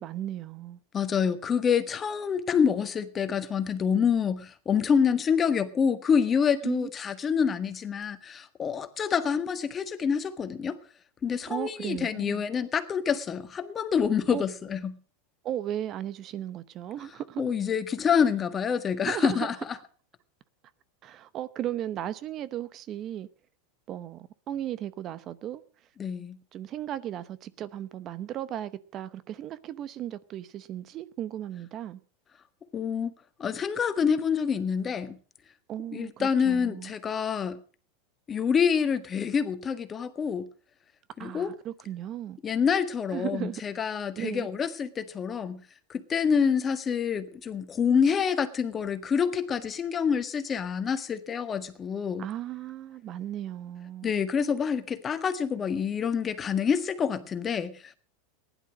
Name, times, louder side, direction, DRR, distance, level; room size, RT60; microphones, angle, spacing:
voice 1, 0.0-0.8 6.6-6.9 7.3-7.6 11.5-12.4 14.3-14.4 15.4-17.4 19.0-19.5 21.0-23.3 23.9-25.6 26.5-32.0 35.7-36.9 41.2-42.4 43.1-43.6 44.2-44.5 52.2-54.1, right 11 dB, 40° right, 0.8 m, -36 dB
voice 2, 0.9-10.8 11.2-15.0 17.4-19.5 26.0-26.4 32.7-33.1 33.4-35.2 35.9-37.6 38.3-40.5 41.2-41.5 42.4-45.6 45.9-52.2 54.0-58.0, left 7 dB, 30° left, 1.6 m, -27 dB
15.5 x 11.0 x 6.3 m
hypercardioid pair, 105°, 0 cm